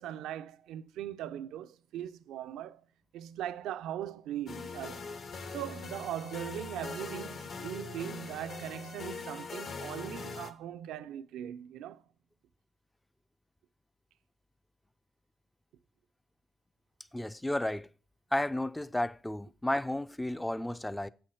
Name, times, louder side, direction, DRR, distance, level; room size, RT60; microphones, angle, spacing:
voice 1, 0.0-2.8 3.1-5.1 5.5-12.0, right 11 dB, 85° right, 0.4 m, -40 dB
sound 1, 4.5-10.5, left 4 dB, 55° left, 0.9 m, -42 dB
voice 2, 17.1-17.9 18.3-21.1, left 1 dB, 10° left, 0.3 m, -32 dB
7.7 x 4.5 x 6.2 m
cardioid pair, 90°, 0 cm